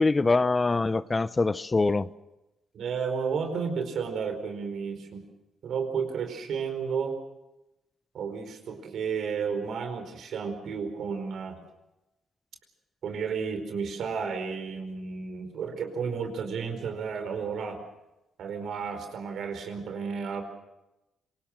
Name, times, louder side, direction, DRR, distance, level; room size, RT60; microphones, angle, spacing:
voice 1, 0.0-2.1, left 3 dB, 30° left, 16 dB, 0.8 m, -24 dB
voice 2, 2.7-5.2 5.6-7.2 8.1-11.6 13.0-17.8 18.4-20.4, right 6 dB, 70° right, 6 dB, 4.7 m, -32 dB
27.0 x 19.0 x 6.6 m, 0.96 s
supercardioid pair, 65°, 0 cm